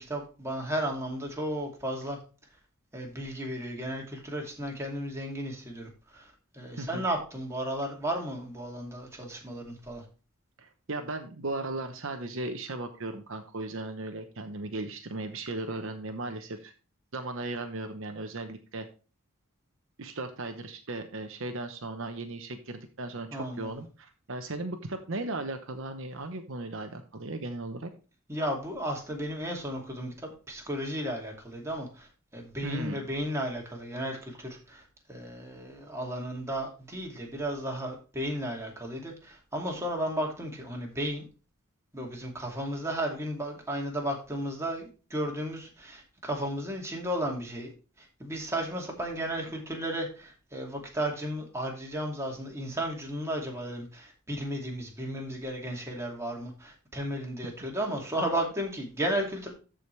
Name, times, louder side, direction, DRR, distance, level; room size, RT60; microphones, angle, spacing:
voice 1, 0.0-2.2 2.9-10.0 23.3-23.7 28.3-41.2 41.9-59.5, right 1 dB, 10° right, -1 dB, 2.5 m, -34 dB
voice 2, 10.6-16.7 17.1-18.9 20.0-27.9 32.6-33.0 57.4-57.5, right 2 dB, 60° right, 6 dB, 1.0 m, -36 dB
14.0 x 5.1 x 3.2 m, 0.34 s
head